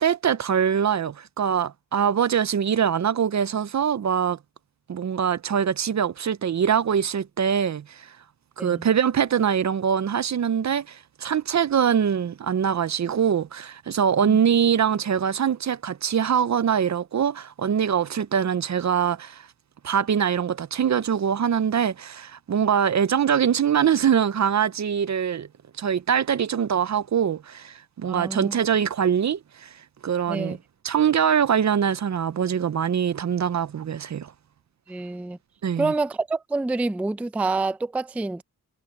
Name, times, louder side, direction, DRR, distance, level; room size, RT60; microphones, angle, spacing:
voice 1, 0.0-4.4 4.9-8.2 8.6-19.5 19.8-25.5 25.8-29.7 30.0-30.6 30.8-34.3 35.6-35.9, right 8 dB, 50° right, 0.5 m, -23 dB
voice 2, 28.1-28.6 30.3-30.6 34.9-35.4 35.8-38.4, right 3 dB, 5° right, 0.3 m, -27 dB
wide cardioid pair, 150°, 36 cm